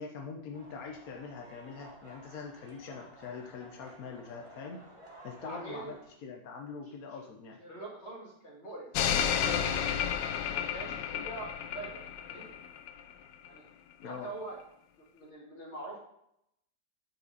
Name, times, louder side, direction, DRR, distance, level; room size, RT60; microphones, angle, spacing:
voice 1, 0.0-4.8 5.2-6.0 6.2-7.6 14.0-14.3, left 5 dB, 60° left, 1 dB, 1.2 m, -43 dB
sound 1, 0.5-6.1, right 1 dB, 20° right, 1.1 m, -54 dB
voice 2, 5.4-5.9 7.6-8.9 9.2-9.8 10.4-12.5 13.4-13.7 14.0-14.6 15.1-16.0, right 2 dB, 40° left, -2 dB, 2.3 m, -44 dB
sound 2, 9.0-13.1 13.5-13.6, left 8 dB, 85° left, 1.3 m, -31 dB
8.8 x 5.1 x 4.1 m, 0.76 s
omnidirectional pair, 1.9 m